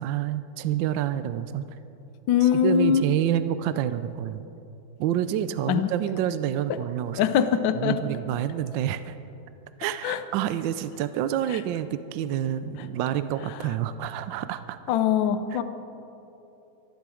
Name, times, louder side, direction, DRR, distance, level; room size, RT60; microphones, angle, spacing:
voice 1, 0.0-1.8 2.4-4.5 5.0-7.3 7.7-9.2 9.8-14.8 15.5-15.6, right 11 dB, 75° right, 12 dB, 1.2 m, -28 dB
voice 2, 2.3-3.0 5.7-5.9 7.2-8.0 10.0-10.2 14.9-15.6, left 8 dB, 70° left, 10 dB, 1.4 m, -22 dB
24.5 x 10.5 x 4.9 m, 2.9 s
omnidirectional pair, 2.2 m